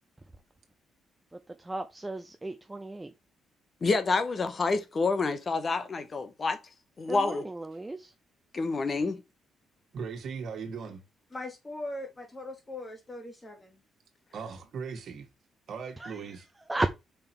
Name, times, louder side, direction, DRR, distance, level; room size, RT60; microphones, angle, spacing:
voice 1, 1.6-3.1 7.1-8.1 16.0-16.2 16.7-16.9, right 2 dB, 15° right, 0.7 m, -34 dB
voice 2, 3.8-6.6 7.0-7.4 8.5-9.2, left 3 dB, 40° left, 0.8 m, -28 dB
voice 3, 9.9-11.0 14.3-15.3 15.7-16.5, right 5 dB, 65° right, 1.7 m, -38 dB
voice 4, 11.3-13.8 16.1-16.3, left 1 dB, 25° left, 2.2 m, -40 dB
5.5 x 3.8 x 4.4 m
cardioid pair, 90°, 0 cm